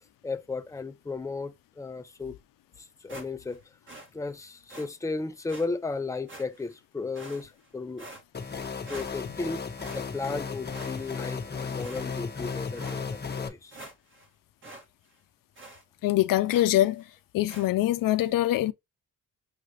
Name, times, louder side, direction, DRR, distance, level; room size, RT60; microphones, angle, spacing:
voice 1, 0.2-2.4 3.0-3.6 4.1-8.1 8.9-9.6 9.9-13.7, left 3 dB, 10° left, 0.5 m, -35 dB
sound 1, 3.1-3.6 3.9-4.1 4.7-4.9 5.5-5.7 6.3-6.7 7.1-7.7 8.0-8.6 8.9-9.4 9.8-10.4 10.7-11.4 11.8-12.3 12.7-13.0 13.4-13.5 13.7-14.3 14.6-14.8 15.1-15.2 15.5-15.8 16.5-16.8 17.5-17.7, right 2 dB, 35° right, 1.5 m, -46 dB
sound 2, 8.3-13.5, left 5 dB, 30° left, 1.0 m, -35 dB
voice 2, 16.0-17.0 17.3-18.7, left 14 dB, 90° left, 0.5 m, -24 dB
6.4 x 2.4 x 3.1 m
cardioid pair, 90°, 32 cm